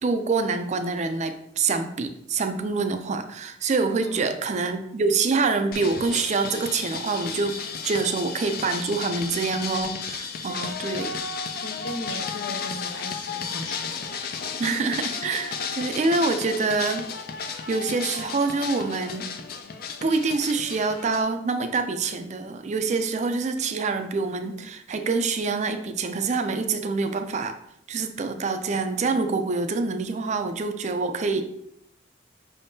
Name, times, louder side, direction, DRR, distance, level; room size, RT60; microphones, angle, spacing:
voice 1, 0.0-11.1 14.6-17.0 17.7-19.3 20.0-27.6 27.9-31.4, right 4 dB, 40° right, 8 dB, 0.4 m, -26 dB
voice 2, 4.0-4.4 11.6-14.7, left 2 dB, 75° left, 4 dB, 0.7 m, -38 dB
sound 1, 5.7-21.2, left 5 dB, 50° left, 0.4 m, -33 dB
5.5 x 3.5 x 2.7 m, 0.75 s
head